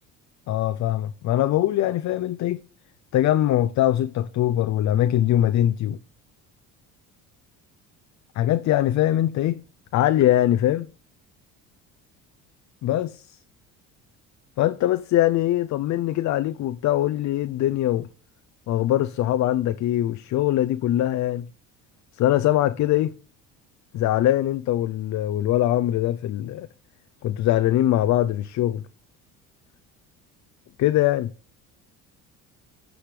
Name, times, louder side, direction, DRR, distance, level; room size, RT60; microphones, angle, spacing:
voice 1, 0.5-2.6 3.1-6.0 8.4-9.6 9.9-10.9 12.8-13.4 14.6-18.1 18.7-21.5 22.1-23.2 23.9-26.7 27.2-28.8 30.8-31.3, left 13 dB, 50° left, 0.5 m, -22 dB
15.0 x 5.0 x 3.2 m
supercardioid pair, 80°, 36 cm